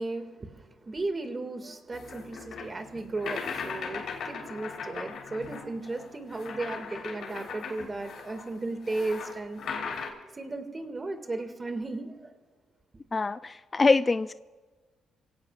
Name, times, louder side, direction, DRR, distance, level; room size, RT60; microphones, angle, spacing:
voice 1, 0.0-9.6 10.3-12.4, right 2 dB, 25° right, 5 dB, 2.1 m, -35 dB
sound 1, 1.9-10.1, left 5 dB, 70° left, 3.7 m, -39 dB
voice 2, 13.1-14.3, left 3 dB, 25° left, 13 dB, 0.4 m, -24 dB
29.5 x 17.0 x 2.5 m, 1.3 s
cardioid pair, 90°, 0 cm